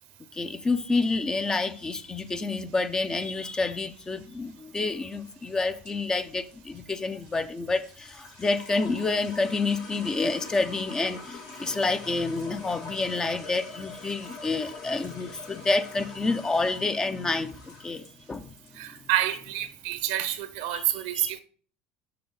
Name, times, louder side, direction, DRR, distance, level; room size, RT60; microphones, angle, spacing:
voice 1, 0.3-18.5 20.7-21.3, left 3 dB, 20° left, 0.7 m, -28 dB
sound 1, 4.6-19.1, left 3 dB, 85° left, 2.3 m, -45 dB
voice 2, 18.8-21.4, right 13 dB, 80° right, 1.0 m, -28 dB
6.7 x 5.9 x 4.0 m
supercardioid pair, 90°, 3 cm